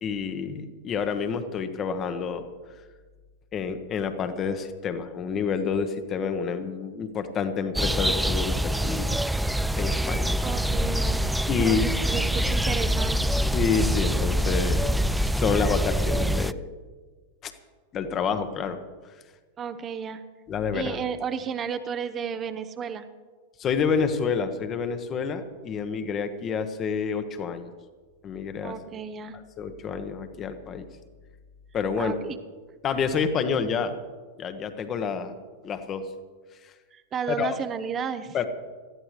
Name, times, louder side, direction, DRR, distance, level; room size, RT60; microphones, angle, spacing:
voice 1, 0.0-2.5 3.5-9.1 9.8-10.3 11.5-11.9 13.5-16.7 17.4-17.5 17.9-18.8 20.5-21.0 23.6-27.7 28.2-28.7 29.3-30.9 31.7-32.2 32.8-33.9 34.4-35.3 35.6-36.1 36.6-36.7 37.3-37.6 38.3-38.4, left 6 dB, 30° left, 9 dB, 1.1 m, -28 dB
sound 1, 7.7-16.5, equal, 5° right, 0.3 m, -25 dB
voice 2, 10.4-11.2 11.6-11.8 12.0-13.3 19.6-20.2 20.7-23.1 28.6-29.4 32.0-32.4 36.9-38.4, right 7 dB, 25° right, 9 dB, 0.8 m, -32 dB
19.0 x 14.0 x 3.2 m, 1.4 s
figure-of-eight pair, 90°, 0 cm